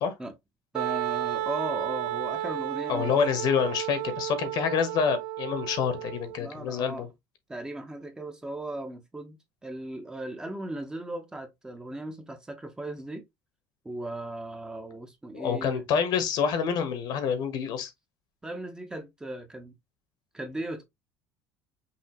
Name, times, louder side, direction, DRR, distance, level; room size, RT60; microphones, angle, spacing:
voice 1, 0.7-3.4 6.4-7.1 7.5-13.2 13.8-15.8 18.4-19.8 20.3-20.8, right 1 dB, 10° right, 0.8 m, -37 dB
Wind instrument woodwind instrument, 0.7-6.4, right 13 dB, 75° right, 0.5 m, -33 dB
voice 2, 2.9-7.1 15.3-17.9, left 6 dB, 55° left, 1.1 m, -27 dB
5.7 x 2.8 x 2.9 m
cardioid pair, 155°, 8 cm